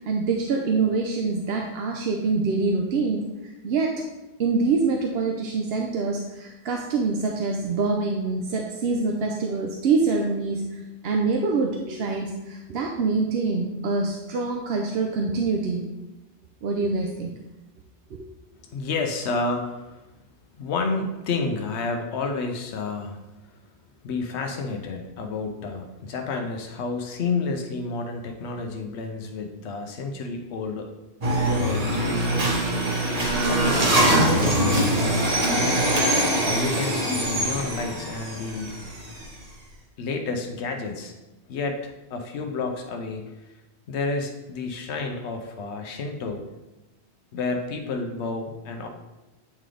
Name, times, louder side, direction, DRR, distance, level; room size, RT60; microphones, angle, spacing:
voice 1, 0.1-3.2 3.6-4.0 4.4-10.8 11.0-15.8 16.6-17.3 18.1-18.2, right 4 dB, 70° right, 1 dB, 0.8 m, -25 dB
voice 2, 18.6-20.1 20.6-23.6 24.0-31.0 31.4-32.5 33.5-35.8 36.4-38.8 40.0-41.1 41.5-43.6 43.9-46.5 47.3-48.9, left 3 dB, 80° left, 4 dB, 1.0 m, -30 dB
sound 1, 31.2-39.3, right 1 dB, 35° right, 1.1 m, -23 dB
8.5 x 3.8 x 3.3 m, 1.0 s
omnidirectional pair, 1.1 m